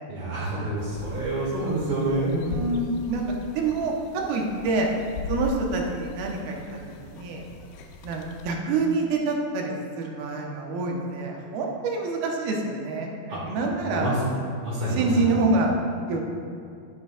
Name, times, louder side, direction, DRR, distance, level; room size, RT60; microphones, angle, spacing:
voice 1, 0.1-2.4 13.3-13.4 13.8-14.2 14.6-15.3, right 1 dB, 60° right, -10 dB, 3.0 m, -27 dB
sound 1, 0.8-8.5, left 3 dB, 90° left, 2.6 m, -39 dB
voice 2, 2.5-4.9 5.3-7.4 8.0-14.2 15.0-15.7 16.1-16.2, right 3 dB, 90° right, 0 dB, 2.7 m, -27 dB
11.0 x 8.3 x 2.3 m, 2.4 s
omnidirectional pair, 4.3 m